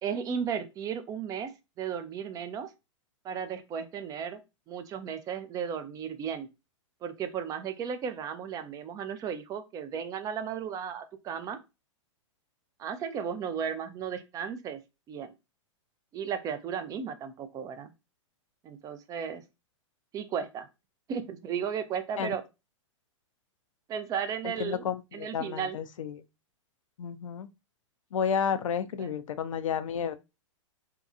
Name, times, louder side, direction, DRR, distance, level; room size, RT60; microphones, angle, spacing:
voice 1, 0.0-1.5 1.8-2.7 3.2-4.4 4.7-6.5 7.0-11.6 12.8-14.8 15.1-15.3 16.1-17.9 18.6-19.4 20.1-20.7 21.1-22.4 23.9-24.9 25.1-25.8 29.0-29.1, right 7 dB, 20° right, 0.3 m, -35 dB
voice 2, 24.4-26.2 27.0-27.5 28.1-30.1, left 7 dB, 85° left, 0.4 m, -31 dB
2.7 x 2.2 x 2.4 m
hypercardioid pair, 120°, 16 cm